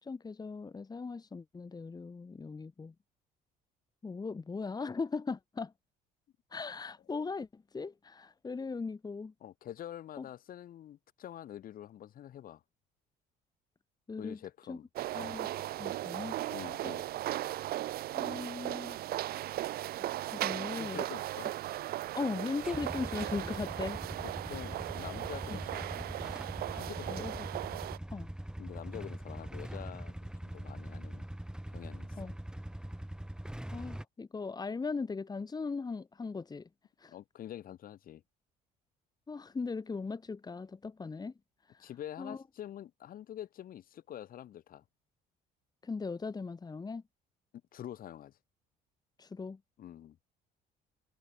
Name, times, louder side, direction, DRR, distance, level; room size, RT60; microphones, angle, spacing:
voice 1, 0.0-2.9 4.0-5.7 6.5-9.3 10.2-10.3 14.1-14.4 14.7-14.8 15.1-15.5 15.8-16.3 18.1-19.0 20.3-21.0 22.1-24.0 25.5-25.6 27.1-27.5 28.1-28.3 32.2-32.3 33.7-36.7 37.0-37.1 39.3-41.3 41.7-41.8 42.2-42.4 45.8-47.0 49.2-49.6, left 4 dB, 25° left, 2.4 m, -38 dB
voice 2, 9.4-12.6 14.2-14.9 15.2-15.4 16.5-17.0 20.7-21.5 24.2-26.2 26.7-27.4 28.6-31.3 31.7-32.3 37.1-38.2 41.8-44.8 47.7-48.4 49.8-50.2, left 11 dB, 55° left, 2.2 m, -46 dB
sound 1, 15.0-28.0, right 14 dB, 65° right, 0.7 m, -37 dB
Motorcycle / Engine starting / Idling, 22.6-34.0, right 1 dB, 5° right, 5.9 m, -42 dB
cardioid pair, 110°, 17 cm